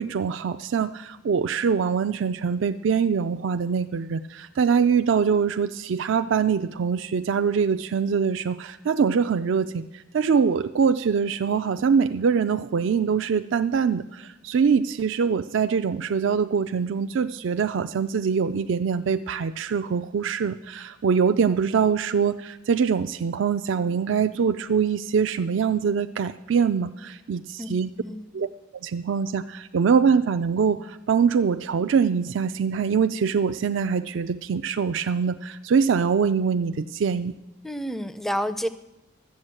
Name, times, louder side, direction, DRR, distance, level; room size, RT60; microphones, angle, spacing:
voice 1, 0.0-27.9 28.3-28.5 28.8-37.3, right 6 dB, 65° right, 9 dB, 0.4 m, -23 dB
voice 2, 37.6-38.7, equal, ahead, 12 dB, 0.4 m, -29 dB
12.5 x 8.0 x 7.7 m, 0.99 s
head